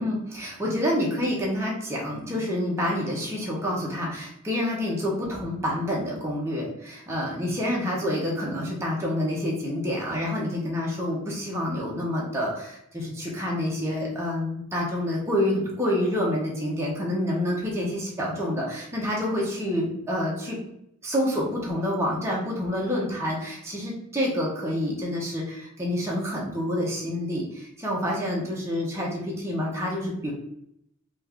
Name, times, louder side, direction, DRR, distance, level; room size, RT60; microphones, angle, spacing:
voice 1, 0.0-20.6 21.0-30.3, left 1 dB, 10° right, -4 dB, 0.6 m, -28 dB
3.1 x 2.3 x 3.4 m, 0.78 s
head